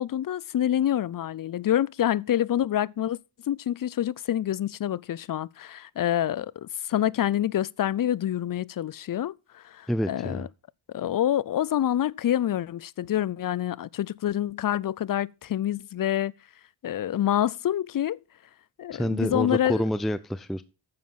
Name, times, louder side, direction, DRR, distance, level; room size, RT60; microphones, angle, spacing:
voice 1, 0.0-3.2 3.5-10.5 10.9-16.3 16.8-18.2 18.8-19.8, left 11 dB, 50° left, 0.5 m, -27 dB
voice 2, 9.9-10.5 18.9-20.6, equal, ahead, 0.6 m, -28 dB
9.7 x 7.2 x 5.8 m
cardioid pair, 60°, 45 cm